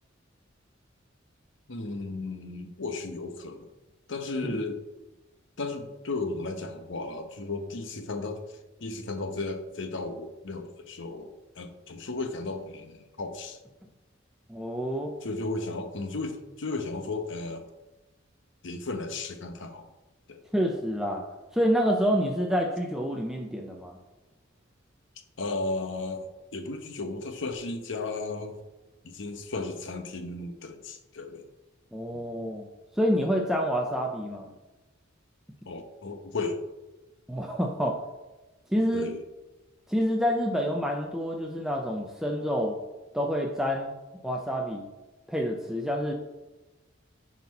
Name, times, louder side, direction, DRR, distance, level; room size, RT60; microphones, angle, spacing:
voice 1, 1.7-3.7 4.1-4.8 5.6-8.4 8.8-13.6 15.2-17.7 18.6-19.9 20.3-20.4 25.4-28.6 29.0-31.5 32.1-32.3 35.6-36.6 38.9-39.2, left 3 dB, 65° left, 7 dB, 0.9 m, -34 dB
voice 2, 14.5-15.1 20.5-21.2 21.5-24.0 31.9-32.7 32.9-34.5 37.3-38.0 38.7-39.1 39.9-42.8 43.1-43.9 44.2-44.9 45.3-46.1, equal, ahead, 1 dB, 0.6 m, -27 dB
10.5 x 4.2 x 4.2 m, 1.1 s
head